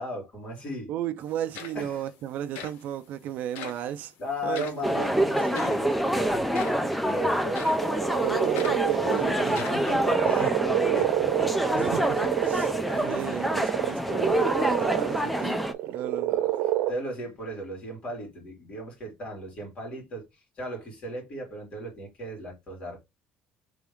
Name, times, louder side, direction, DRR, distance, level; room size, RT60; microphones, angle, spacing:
voice 1, 0.0-0.9 1.7-2.1 4.2-7.7 9.4-11.5 12.8-13.1 16.9-23.0, equal, 35° left, 2.7 m, -36 dB
voice 2, 0.9-4.1 4.4-5.7 8.2-9.6 11.7-16.6, right 11 dB, 60° right, 0.4 m, -35 dB
sound 1, 1.2-1.3 1.5-2.0 2.6-2.8 3.6-3.9 4.5-4.8 5.6-5.9 6.5-6.9 7.6-7.9 8.6-8.9 9.5-9.9, left 7 dB, 80° left, 1.1 m, -40 dB
sound 2, 4.8-15.7, equal, ahead, 0.5 m, -27 dB
sound 3, 7.8-16.9, right 13 dB, 80° right, 0.7 m, -28 dB
3.5 x 3.4 x 3.6 m
cardioid pair, 140°, 3 cm